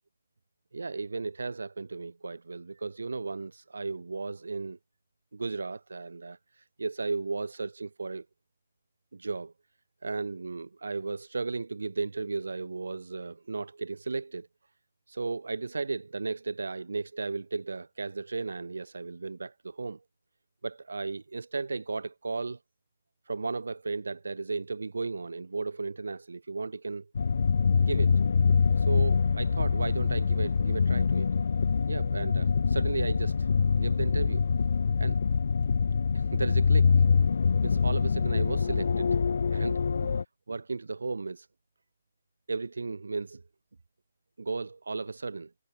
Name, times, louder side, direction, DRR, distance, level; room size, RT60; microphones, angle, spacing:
voice 1, 0.7-4.8 5.3-8.3 9.1-9.5 10.0-14.5 15.1-20.0 20.6-22.6 23.3-27.1 27.8-28.1 28.8-31.3 31.9-33.5 33.8-34.5 35.0-35.2 36.1-37.0 37.6-39.1 39.5-40.1 40.5-41.5 42.5-43.4 44.4-45.5, right 3 dB, 80° right, 4.3 m, -35 dB
sound 1, 27.1-40.2, left 5 dB, 65° left, 1.2 m, -25 dB
figure-of-eight pair, 145°, 0 cm